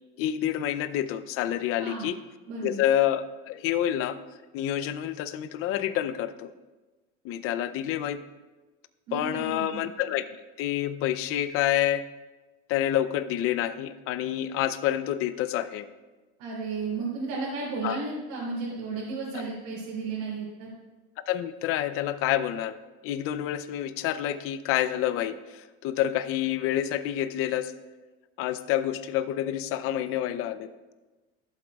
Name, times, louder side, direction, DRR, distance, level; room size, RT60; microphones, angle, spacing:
voice 1, 0.2-2.2 2.6-4.2 4.5-6.5 7.2-8.2 9.1-10.3 10.6-12.1 12.7-15.9 17.8-18.0 21.3-22.8 23.0-27.7 28.4-30.7, left 12 dB, 50° left, 13 dB, 0.6 m, -28 dB
voice 2, 2.5-2.8 9.1-9.8 16.4-20.7, right 4 dB, 75° right, -7 dB, 3.1 m, -33 dB
14.5 x 8.0 x 2.4 m, 1.2 s
cardioid pair, 145°, 29 cm